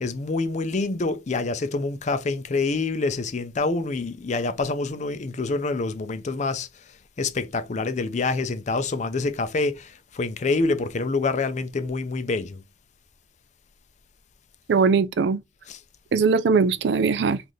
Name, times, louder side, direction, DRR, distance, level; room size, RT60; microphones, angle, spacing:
voice 1, 0.0-6.7 7.2-12.6 15.7-15.8, left 3 dB, 40° left, 0.4 m, -26 dB
voice 2, 14.7-15.4 16.1-17.4, right 5 dB, 65° right, 0.4 m, -20 dB
3.2 x 2.5 x 3.9 m
head